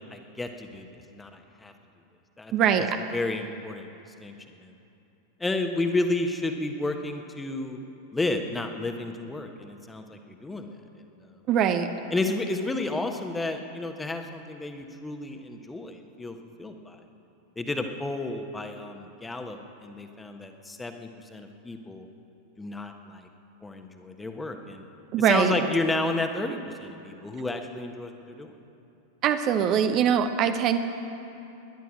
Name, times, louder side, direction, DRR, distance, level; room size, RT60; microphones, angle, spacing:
voice 1, 0.0-1.7 2.4-2.5 2.8-2.9 3.1-3.9 4.2-4.8 5.4-7.8 8.1-11.3 12.1-17.0 17.6-22.1 22.6-23.3 23.6-24.8 25.2-28.5, left 2 dB, 10° left, 5 dB, 1.3 m, -32 dB
voice 2, 2.5-2.9 11.5-11.9 25.1-25.5 29.2-30.8, right 8 dB, 35° right, 8 dB, 0.8 m, -22 dB
20.0 x 11.0 x 6.4 m, 2.8 s
figure-of-eight pair, 90°, 0 cm